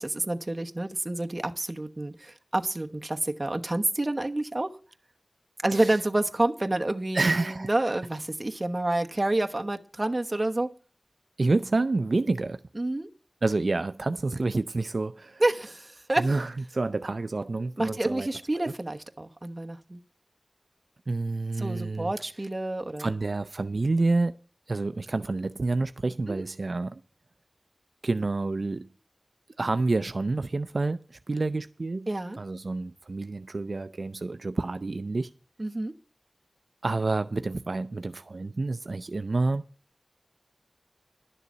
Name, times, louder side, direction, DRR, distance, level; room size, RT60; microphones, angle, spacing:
voice 1, 0.0-4.7 5.6-10.7 12.7-13.1 15.4-16.3 17.8-20.0 21.6-23.1 26.3-26.4 32.1-32.4 35.6-35.9, right 2 dB, 35° right, 1.0 m, -28 dB
voice 2, 7.1-7.7 11.4-12.6 13.4-15.4 16.2-18.3 18.6-18.7 21.1-22.1 23.0-24.3 24.7-27.0 28.0-28.9 29.6-32.1 32.4-35.3 36.8-39.6, right 3 dB, 75° right, 0.4 m, -28 dB
11.5 x 6.8 x 7.3 m
wide cardioid pair, 60°, 0 cm